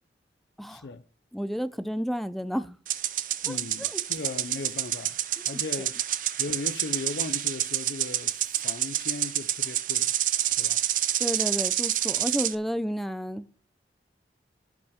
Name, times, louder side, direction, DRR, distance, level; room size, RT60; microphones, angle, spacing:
voice 1, 0.7-1.0 3.4-5.2 5.5-6.0 6.4-10.1 10.5-10.8, left 3 dB, 70° left, 0.5 m, -37 dB
voice 2, 1.3-2.8 3.5-4.0 5.5-5.6 11.2-13.5, equal, ahead, 0.4 m, -31 dB
sound 1, 2.9-12.6, right 12 dB, 50° right, 0.6 m, -28 dB
15.5 x 5.4 x 3.5 m
head